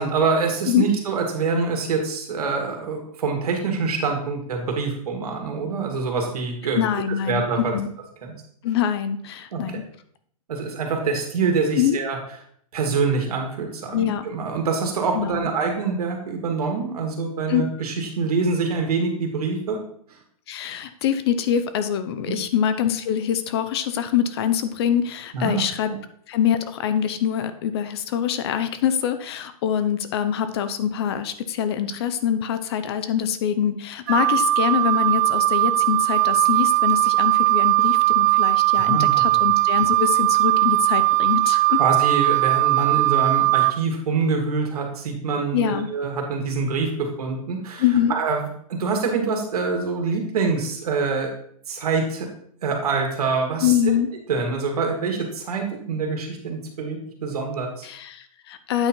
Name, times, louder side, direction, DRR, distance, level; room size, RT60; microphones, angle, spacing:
voice 1, 0.0-6.9 7.3-7.7 8.2-8.3 9.5-9.8 10.5-12.2 12.7-19.8 20.1-20.2 22.3-22.4 25.3-25.6 38.7-39.1 41.8-47.8 48.1-51.3 51.7-52.3 52.6-54.0 54.3-57.8, right 4 dB, 75° right, 2 dB, 2.2 m, -25 dB
voice 2, 6.7-7.9 8.6-9.8 11.7-12.0 13.9-14.2 15.1-15.5 17.5-17.6 20.5-25.9 26.3-41.8 45.5-45.9 47.8-48.1 53.6-54.1 57.8-58.9, left 9 dB, 40° left, 11 dB, 0.6 m, -24 dB
Wind instrument woodwind instrument, 34.1-43.7, right 20 dB, 30° right, 0.4 m, -19 dB
8.7 x 4.3 x 4.4 m, 0.63 s
hypercardioid pair, 155°, 19 cm